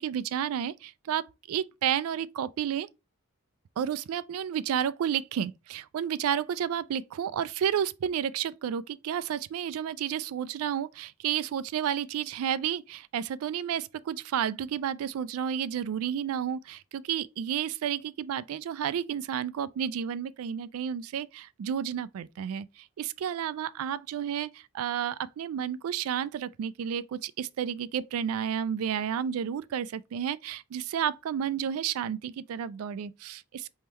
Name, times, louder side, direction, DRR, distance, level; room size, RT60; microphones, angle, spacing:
voice 1, 0.0-2.9 3.8-33.7, right 9 dB, 80° right, 0.3 m, -31 dB
4.3 x 3.6 x 2.9 m
head